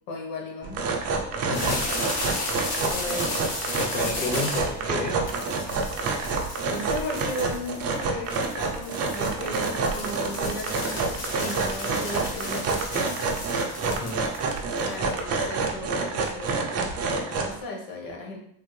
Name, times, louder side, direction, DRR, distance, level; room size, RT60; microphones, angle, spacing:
voice 1, 0.1-0.9 2.9-3.3 6.7-13.4 14.8-18.4, left 2 dB, 50° left, 0 dB, 1.0 m, -36 dB
sound 1, 0.6-17.6, right 4 dB, 35° right, 0.4 m, -28 dB
voice 2, 1.4-1.9 2.1-2.6 3.7-5.2 13.9-14.2, left 3 dB, 20° left, 1 dB, 0.5 m, -32 dB
sound 2, 1.5-15.2, left 2 dB, 75° left, 1.2 m, -34 dB
3.5 x 2.0 x 3.0 m, 0.66 s
cardioid pair, 135°, 44 cm